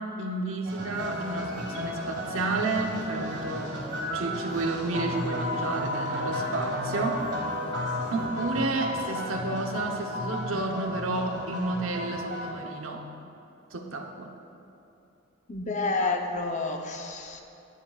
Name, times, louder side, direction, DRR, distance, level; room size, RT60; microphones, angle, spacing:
voice 1, 0.0-3.8 4.1-7.3 8.1-13.0 13.7-14.3, right 2 dB, 80° right, 2 dB, 0.9 m, -31 dB
sound 1, 0.7-12.5, left 1 dB, 60° right, 1.7 m, -33 dB
voice 2, 15.5-17.4, left 3 dB, 35° left, 3 dB, 0.7 m, -29 dB
13.0 x 10.5 x 2.4 m, 2.7 s
head